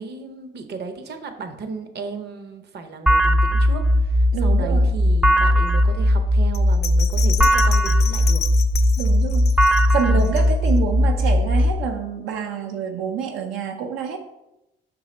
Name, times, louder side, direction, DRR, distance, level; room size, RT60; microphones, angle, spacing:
voice 1, 0.0-8.4 10.0-10.3, right 4 dB, 55° right, 8 dB, 0.8 m, -35 dB
sound 1, 3.1-11.7, equal, 5° right, 0.4 m, -18 dB
voice 2, 4.3-4.9 9.0-14.2, right 6 dB, 85° right, 4 dB, 0.5 m, -27 dB
Bell, 6.5-10.9 11.3-11.4, left 9 dB, 55° left, 0.5 m, -31 dB
5.7 x 3.9 x 4.2 m, 0.92 s
cardioid pair, 90°, 20 cm